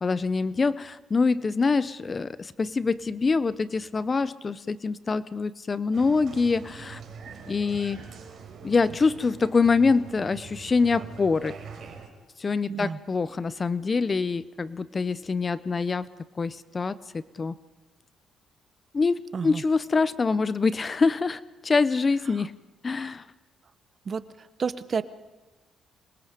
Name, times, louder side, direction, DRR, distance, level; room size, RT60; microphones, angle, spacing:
voice 1, 0.0-7.0 7.5-8.0 8.6-11.5 12.4-16.1 16.4-17.5 18.9-22.5 22.8-23.2, left 4 dB, 35° left, 16 dB, 0.7 m, -25 dB
Applause, 5.9-12.1, right 6 dB, 60° right, 4.2 m, -43 dB
voice 2, 24.6-25.0, right 5 dB, 45° right, 14 dB, 0.9 m, -29 dB
26.0 x 21.5 x 5.1 m, 1.2 s
cardioid pair, 90°, 0 cm